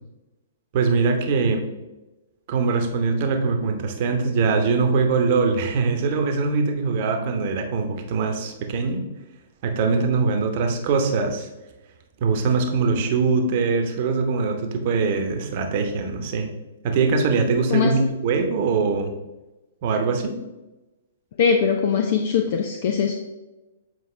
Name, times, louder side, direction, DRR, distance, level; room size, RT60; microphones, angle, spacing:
voice 1, 0.7-1.6 2.5-9.1 9.6-11.5 12.2-16.5 16.8-19.1 19.8-20.3, right 4 dB, 45° right, 4 dB, 1.0 m, -22 dB
voice 2, 21.4-23.1, left 6 dB, 50° left, 3 dB, 0.6 m, -21 dB
7.8 x 4.8 x 3.2 m, 1.1 s
figure-of-eight pair, 115°, 0 cm